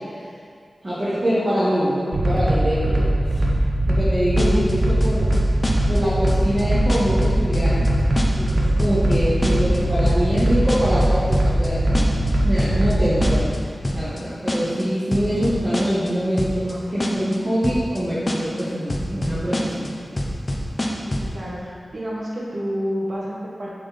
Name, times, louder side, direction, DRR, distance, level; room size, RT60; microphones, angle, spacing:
voice 1, 0.8-3.4 3.9-5.3 5.9-7.8 8.4-13.5 13.9-20.0, equal, 25° right, -11 dB, 1.8 m, -24 dB
sound 1, 2.1-13.4, right 1 dB, 75° right, 0.9 m, -20 dB
sound 2, 4.4-4.7 5.0-6.0 6.3-6.6 6.9-7.3 7.5-7.9 8.2-8.5 8.8-9.8 10.1-11.7 11.9-12.3 12.6-12.9 13.2-13.6 13.8-14.2 14.5-14.8 15.1-16.1 16.4-16.7 17.0-17.4 17.6-18.0 18.3-18.6 18.9-19.9 20.2-21.3, left 1 dB, 25° left, 0.8 m, -25 dB
voice 2, 21.1-23.7, equal, 55° right, -5 dB, 1.7 m, -29 dB
7.5 x 4.3 x 5.2 m, 2.2 s
wide cardioid pair, 100°, 0 cm